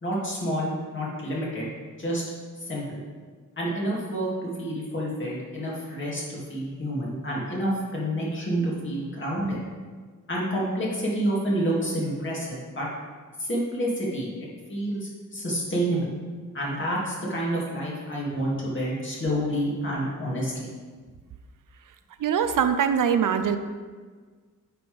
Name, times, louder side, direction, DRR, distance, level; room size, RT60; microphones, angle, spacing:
voice 1, 0.0-1.7 2.0-2.2 2.6-3.0 3.6-9.6 10.3-12.9 13.4-14.3 14.7-16.1 16.5-20.7, right 1 dB, 35° left, -5 dB, 2.5 m, -28 dB
voice 2, 22.2-23.6, right 8 dB, 75° right, 9 dB, 0.6 m, -22 dB
9.2 x 6.0 x 3.5 m, 1.5 s
wide cardioid pair, 120°, 32 cm